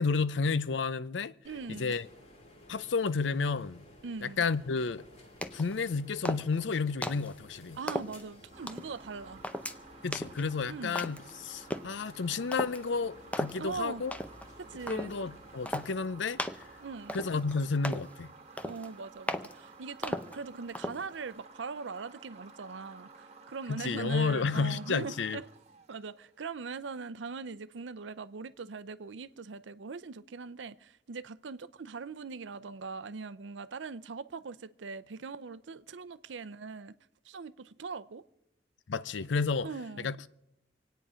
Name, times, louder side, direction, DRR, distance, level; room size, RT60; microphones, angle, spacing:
voice 1, 0.0-1.3 1.7-2.1 2.7-3.8 4.2-5.0 5.5-7.8 10.0-14.1 14.9-16.4 17.1-18.3 23.7-25.4 38.9-39.7 40.0-40.3, left 4 dB, 80° left, 0.6 m, -31 dB
sound 1, 1.4-17.6, left 1 dB, 40° left, 2.3 m, -55 dB
voice 2, 1.4-1.9 4.0-4.4 7.7-9.4 10.7-11.1 13.6-14.0 14.6-15.1 16.8-17.2 18.6-25.5 25.9-36.9 37.3-38.2 39.6-40.1, right 4 dB, 80° right, 0.6 m, -41 dB
sound 2, 5.4-5.8 6.3-6.6 7.0-7.3 7.9-8.2 8.7-9.0 9.4-9.8 10.1-10.4 11.0-11.3 11.7-12.0 12.5-12.8 13.3-13.6 14.1-14.5 14.9-15.2 15.7-15.9 16.4-16.7 17.1-17.5 17.8-18.1 18.6-18.9 19.3-19.5 20.0-20.4 20.8-21.0, left 1 dB, 10° left, 0.6 m, -36 dB
sound 3, 8.5-26.5, right 4 dB, 40° right, 1.4 m, -54 dB
26.0 x 9.2 x 5.0 m
head